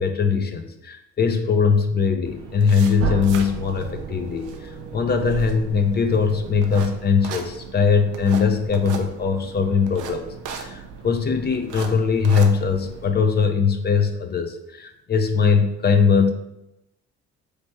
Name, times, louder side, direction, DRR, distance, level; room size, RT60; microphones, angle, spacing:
voice 1, 0.0-16.3, left 5 dB, 35° left, 7 dB, 0.5 m, -21 dB
sound 1, 2.3-13.1, right 5 dB, 90° right, 0.6 m, -37 dB
sound 2, 3.0-7.7, right 7 dB, 50° right, 0.5 m, -35 dB
3.3 x 3.3 x 4.3 m, 0.86 s
cardioid pair, 90°, 30 cm